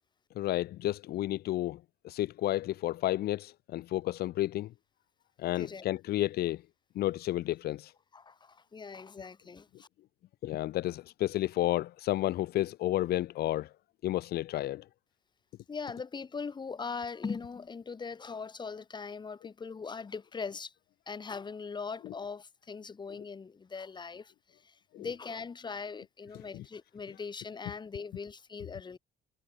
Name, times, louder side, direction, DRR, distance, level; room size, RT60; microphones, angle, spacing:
voice 1, 0.4-1.8 2.0-4.7 5.4-6.6 6.9-7.9 10.4-13.7 14.0-14.8 24.9-25.1, left 15 dB, 70° left, 1.0 m, -31 dB
voice 2, 5.5-5.9 8.1-9.9 15.7-20.7 21.1-29.0, left 5 dB, 25° left, 2.0 m, -40 dB
cardioid pair, 110°, 17 cm